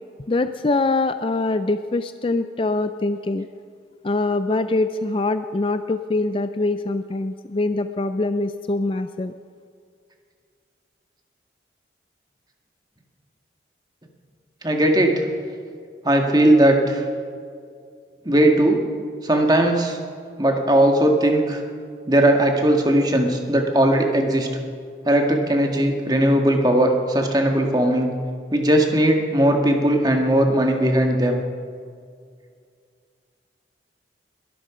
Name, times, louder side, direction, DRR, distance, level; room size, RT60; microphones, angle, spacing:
voice 1, 0.3-3.5 4.0-9.3, left 2 dB, 30° left, 10 dB, 0.4 m, -23 dB
voice 2, 14.6-15.3 16.0-17.0 18.3-18.8 19.2-20.0 20.4-21.6 22.1-24.5 25.1-28.1 28.5-31.4, right 1 dB, 20° right, 3 dB, 1.7 m, -18 dB
21.5 x 13.0 x 5.0 m, 2.2 s
head